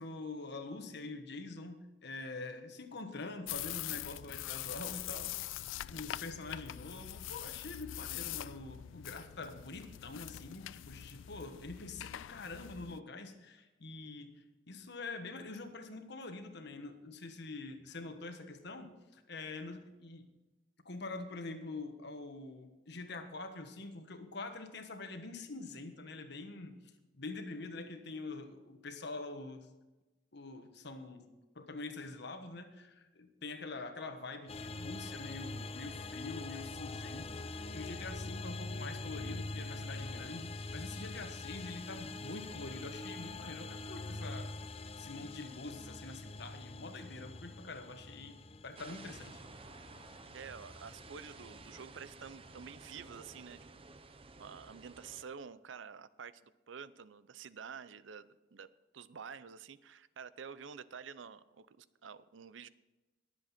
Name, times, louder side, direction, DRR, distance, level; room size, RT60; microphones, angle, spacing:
voice 1, 0.0-5.6 5.9-20.3 20.8-26.8 27.1-29.7 30.3-31.3 31.5-44.5 44.9-48.4 48.6-49.4, left 3 dB, 65° left, 7 dB, 1.4 m, -45 dB
sound 1, 3.5-13.0, left 14 dB, 85° left, 0.3 m, -43 dB
sound 2, 34.5-53.6, left 2 dB, 30° left, 0.6 m, -44 dB
sound 3, 48.8-55.2, right 3 dB, 30° right, 0.7 m, -53 dB
voice 2, 50.3-53.6 54.4-58.7 58.9-62.7, right 6 dB, 85° right, 16 dB, 0.6 m, -49 dB
20.5 x 7.8 x 4.3 m, 1.1 s
head